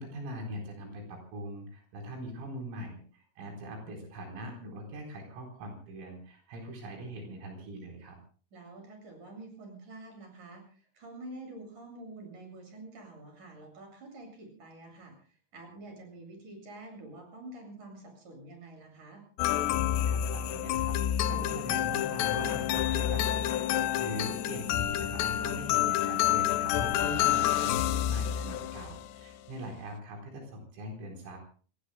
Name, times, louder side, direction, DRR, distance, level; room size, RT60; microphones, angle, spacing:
voice 1, 0.0-8.2 20.1-21.0 21.3-23.4 23.7-31.4, right 1 dB, 80° right, 2 dB, 6.8 m, -42 dB
voice 2, 8.5-15.1 15.5-19.2, right 2 dB, 40° right, 4 dB, 8.8 m, -47 dB
sound 1, 19.4-29.1, left 11 dB, 75° left, 2.6 m, -28 dB
28.0 x 22.0 x 2.2 m, 0.42 s
omnidirectional pair, 5.8 m